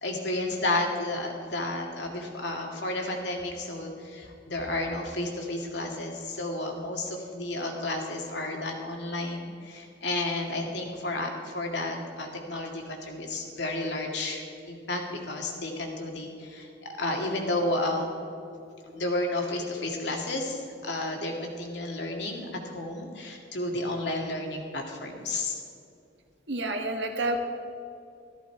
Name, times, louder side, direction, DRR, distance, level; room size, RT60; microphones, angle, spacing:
voice 1, 0.0-18.1 18.9-25.6, left 2 dB, 70° left, 1 dB, 2.2 m, -32 dB
voice 2, 26.5-27.4, right 2 dB, 70° right, 4 dB, 1.5 m, -29 dB
14.0 x 13.5 x 4.6 m, 2.5 s
head